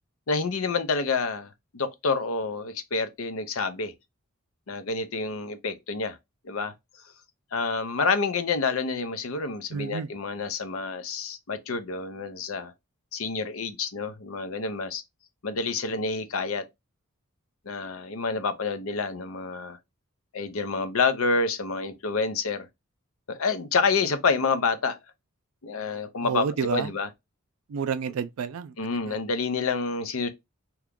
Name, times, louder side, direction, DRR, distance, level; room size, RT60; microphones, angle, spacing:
voice 1, 0.3-3.9 4.7-6.2 6.4-6.7 7.5-12.7 13.1-15.0 15.4-16.6 17.7-19.8 20.3-22.7 23.3-25.0 25.6-27.1 28.8-30.3, left 4 dB, 70° left, 0.6 m, -28 dB
voice 2, 9.7-10.1 26.2-26.9 27.7-28.7 29.1-29.2, right 6 dB, 85° right, 0.4 m, -29 dB
2.9 x 2.3 x 3.5 m
head